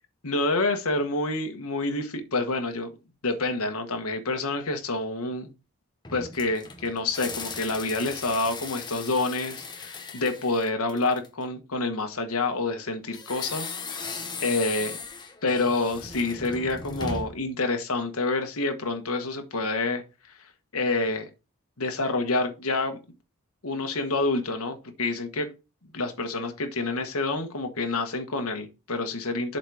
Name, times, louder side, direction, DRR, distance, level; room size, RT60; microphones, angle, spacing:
voice 1, 0.2-2.9 3.2-5.5 6.1-14.1 14.4-15.0 15.4-20.0 20.7-21.2 21.8-23.0 23.6-25.5 25.9-29.6, left 3 dB, 85° left, 1.4 m, -28 dB
Creaky Door, 6.0-11.4 13.1-17.5, left 4 dB, 20° left, 1.0 m, -38 dB
7.4 x 4.1 x 4.8 m
head